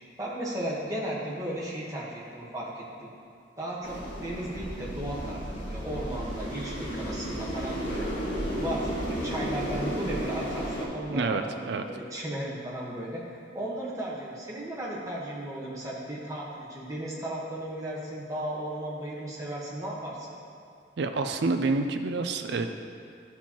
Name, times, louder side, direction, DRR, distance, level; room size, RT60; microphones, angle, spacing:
voice 1, 0.2-3.1 3.6-8.1 8.6-11.6 11.8-13.2 13.5-20.4, right 1 dB, 15° right, -6 dB, 1.2 m, -35 dB
sound 1, 3.8-10.9, equal, 70° left, 1.7 m, -33 dB
voice 2, 11.1-11.8 21.0-22.7, right 3 dB, 60° right, 6 dB, 0.4 m, -28 dB
11.5 x 4.3 x 3.0 m, 2.5 s
head